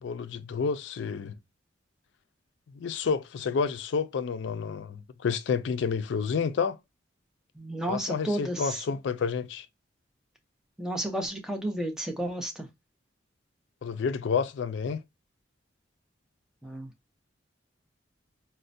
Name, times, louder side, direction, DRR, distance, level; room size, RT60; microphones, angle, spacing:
voice 1, 0.0-1.4 2.8-6.8 7.9-9.7 13.8-15.0, left 5 dB, 70° left, 0.3 m, -29 dB
voice 2, 7.6-8.8 10.8-12.7 16.6-16.9, right 1 dB, 5° right, 0.6 m, -32 dB
4.3 x 2.1 x 2.5 m
head